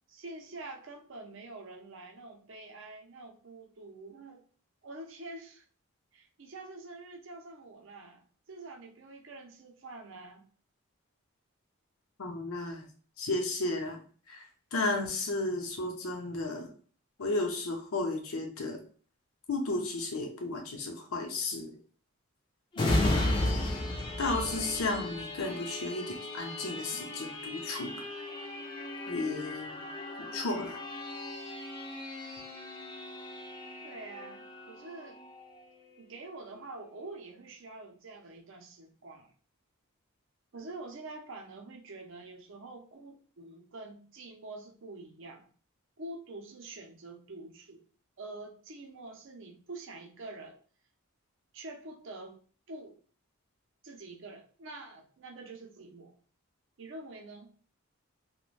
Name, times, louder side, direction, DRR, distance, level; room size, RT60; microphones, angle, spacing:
voice 1, 0.1-4.4 4.8-5.6 6.1-10.4 23.0-23.3 33.8-35.2 36.0-39.3 40.5-45.5 46.0-47.8 48.2-50.6 51.5-52.4 52.7-53.0 53.8-56.1 56.8-57.5, right 2 dB, 60° right, 4 dB, 0.5 m, -46 dB
voice 2, 12.2-12.9 13.2-14.0 14.3-16.7 17.2-18.8 19.5-21.7 22.8-23.7 24.2-27.9 29.1-29.9 30.2-30.8, left 2 dB, 75° left, 2 dB, 0.7 m, -34 dB
sound 1, 22.7-36.1 36.5-36.7, left 1 dB, 20° left, 0.4 m, -35 dB
2.4 x 2.1 x 3.1 m, 0.43 s
head